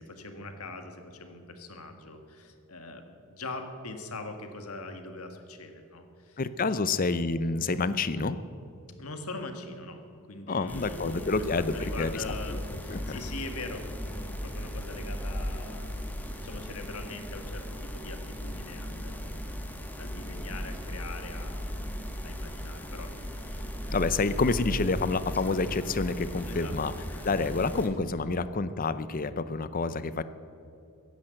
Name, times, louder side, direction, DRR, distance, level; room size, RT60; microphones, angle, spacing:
voice 1, 0.0-6.8 9.0-10.0 10.3-11.3 11.6-16.0 16.4-19.4 20.0-21.8 22.2-23.2 23.5-24.0 24.2-24.5 26.5-27.5, left 2 dB, 80° left, 6 dB, 1.7 m, -42 dB
voice 2, 6.4-8.4 10.5-12.6 12.9-13.2 23.9-26.9 27.2-30.2, left 3 dB, 40° left, 14 dB, 0.6 m, -28 dB
sound 1, 10.7-27.9, equal, 10° left, 1.2 m, -37 dB
15.0 x 10.5 x 7.7 m, 2.7 s
head